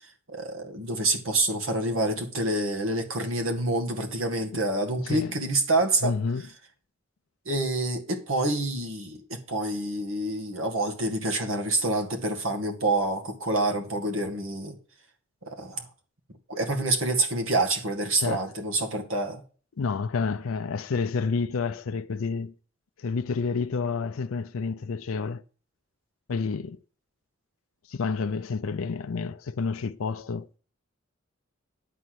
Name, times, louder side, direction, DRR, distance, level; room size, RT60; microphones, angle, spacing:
voice 1, 0.3-6.1 7.5-14.8 15.5-15.9 16.5-19.4, right 2 dB, 75° right, 2.1 m, -27 dB
voice 2, 5.0-5.3 6.0-6.4 18.2-18.4 19.8-22.5 23.0-25.4 26.3-26.8 27.9-30.5, left 4 dB, 85° left, 0.5 m, -29 dB
11.0 x 4.3 x 7.9 m
head